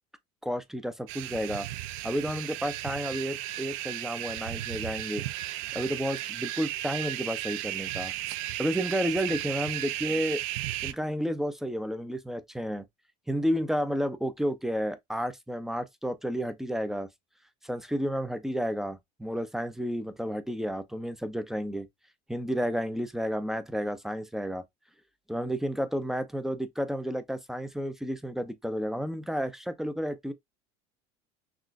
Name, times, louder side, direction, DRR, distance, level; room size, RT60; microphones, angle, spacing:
voice 1, 0.4-1.7 2.0-5.2 5.7-8.1 8.6-10.4 10.8-12.8 13.3-17.1 17.6-21.9 22.3-24.6 25.3-30.3, equal, ahead, 0.4 m, -31 dB
sound 1, 1.1-10.9, right 15 dB, 75° right, 0.4 m, -35 dB
6.0 x 2.1 x 2.5 m
supercardioid pair, 130°, 17 cm